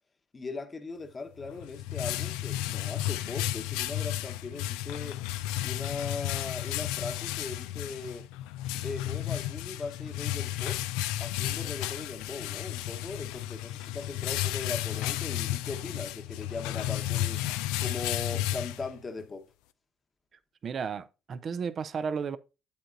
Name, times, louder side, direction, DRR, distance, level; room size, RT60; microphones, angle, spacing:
voice 1, 0.3-5.2 5.6-8.3 8.8-10.8 11.2-17.5 17.8-19.5, left 3 dB, 30° left, 1.2 m, -39 dB
sound 1, 1.4-19.2, left 14 dB, 90° left, 0.4 m, -33 dB
voice 2, 20.6-22.4, right 6 dB, 45° right, 0.6 m, -33 dB
8.5 x 7.7 x 2.6 m
supercardioid pair, 80°, 0 cm